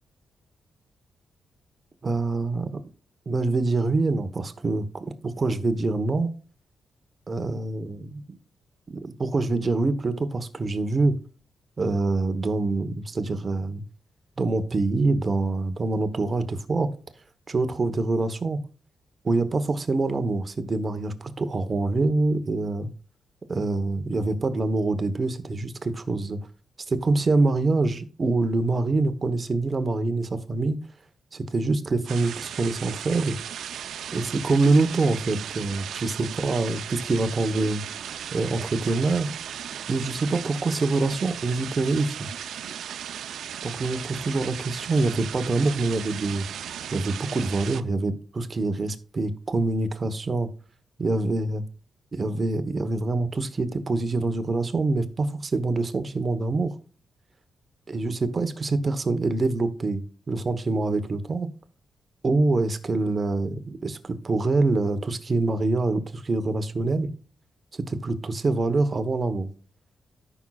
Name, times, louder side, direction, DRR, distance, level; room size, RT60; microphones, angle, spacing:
voice 1, 2.0-2.8 3.3-6.3 7.3-8.4 8.9-11.1 11.8-13.8 14.4-16.9 17.5-18.6 19.2-22.9 23.5-26.4 26.9-30.8 31.3-33.3 34.1-37.8 38.3-39.3 39.9-42.3 43.6-46.5 46.9-50.5 51.0-51.6 52.1-56.7 57.9-61.5 62.2-67.1 67.7-69.5, right 3 dB, 30° right, 1.0 m, -25 dB
sound 1, 32.1-47.8, right 9 dB, 85° right, 0.5 m, -36 dB
14.0 x 6.1 x 2.3 m
wide cardioid pair, 145°, 0 cm